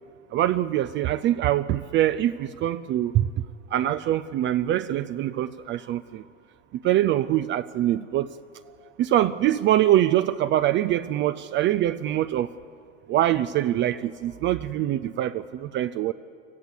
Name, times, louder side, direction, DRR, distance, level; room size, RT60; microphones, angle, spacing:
voice 1, 0.3-3.3 3.7-6.2 6.8-8.3 9.0-12.5 13.1-16.1, right 13 dB, 30° right, 0.4 m, -24 dB
25.5 x 15.0 x 8.3 m
hypercardioid pair, 95°, 39 cm